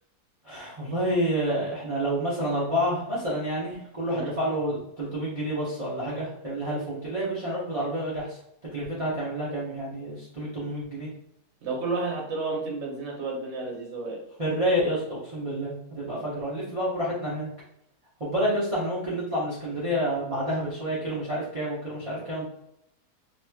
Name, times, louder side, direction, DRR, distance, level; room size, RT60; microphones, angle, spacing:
voice 1, 0.4-8.4 8.7-11.1 14.4-17.5 18.2-22.4, equal, 35° right, -9 dB, 0.5 m, -29 dB
voice 2, 11.6-14.2, right 3 dB, 50° right, -1 dB, 1.0 m, -31 dB
2.9 x 2.9 x 2.3 m, 0.78 s
omnidirectional pair, 1.8 m